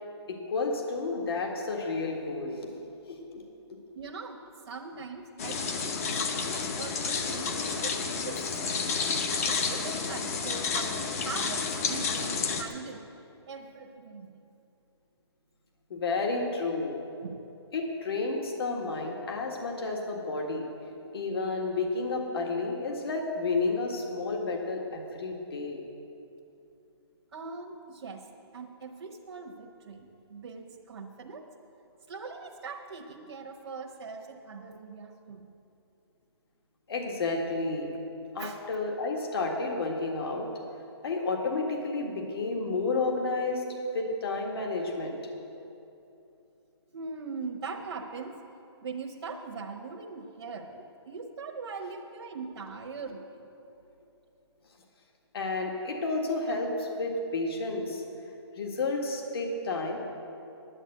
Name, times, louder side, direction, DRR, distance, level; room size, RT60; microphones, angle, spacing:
voice 1, 0.3-3.5 7.5-7.6 15.9-17.0 17.7-20.6 21.1-25.8 36.9-38.0 38.3-40.5 41.0-43.6 43.9-45.2 55.3-58.0 58.6-60.0, left 3 dB, 60° left, 1 dB, 1.8 m, -31 dB
voice 2, 3.9-6.0 6.3-9.0 9.5-13.1 13.5-14.5 17.2-17.4 27.3-31.5 32.1-35.5 38.4-38.6 43.8-43.9 45.1-45.2 46.9-48.4 48.8-53.5, right 4 dB, 60° right, 0 dB, 1.1 m, -41 dB
sound 1, 5.4-12.6, left 5 dB, 35° left, 0.9 m, -30 dB
10.0 x 8.9 x 9.1 m, 2.8 s
hypercardioid pair, 170°, 14 cm